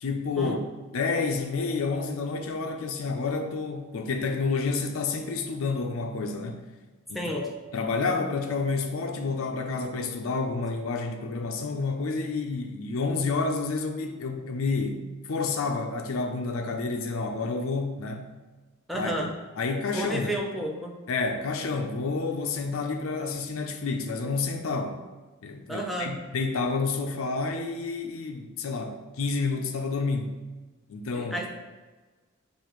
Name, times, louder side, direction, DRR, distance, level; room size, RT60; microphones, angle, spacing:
voice 1, 0.0-0.6 0.9-6.6 7.1-7.4 7.7-18.3 18.9-19.1 19.6-20.3 21.1-25.0 25.4-30.4 30.9-31.4, left 4 dB, 75° left, 4 dB, 0.5 m, -29 dB
voice 2, 18.9-19.3 19.9-21.0 25.7-26.2 31.1-31.5, right 1 dB, ahead, -1 dB, 0.5 m, -31 dB
6.8 x 2.5 x 3.0 m, 1.3 s
head